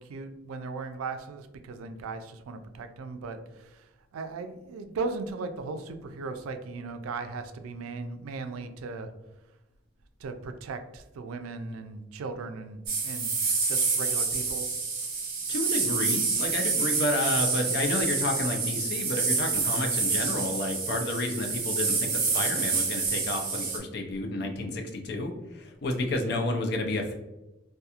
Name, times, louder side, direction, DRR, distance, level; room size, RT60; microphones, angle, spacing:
voice 1, 0.0-3.8 4.1-9.1 10.2-13.3 13.7-14.7, right 4 dB, 90° right, 8 dB, 0.3 m, -37 dB
sound 1, 12.9-23.8, right 4 dB, 45° right, 0.7 m, -28 dB
voice 2, 15.5-27.1, left 2 dB, 50° left, 3 dB, 0.4 m, -30 dB
2.8 x 2.2 x 2.3 m, 1.0 s
head